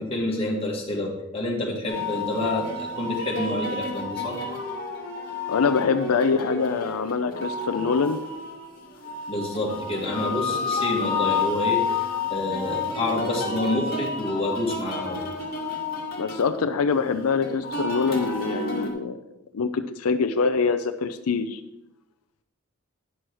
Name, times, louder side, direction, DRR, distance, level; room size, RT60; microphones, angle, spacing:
voice 1, 0.0-4.4 9.3-15.3, left 2 dB, 25° left, -3 dB, 2.0 m, -28 dB
sound 1, 1.9-18.9, left 4 dB, 40° left, 1.9 m, -30 dB
voice 2, 5.5-8.2 10.7-10.8 16.2-19.2 19.5-21.6, left 5 dB, 85° left, 10 dB, 0.5 m, -24 dB
10.0 x 6.2 x 4.7 m, 0.93 s
head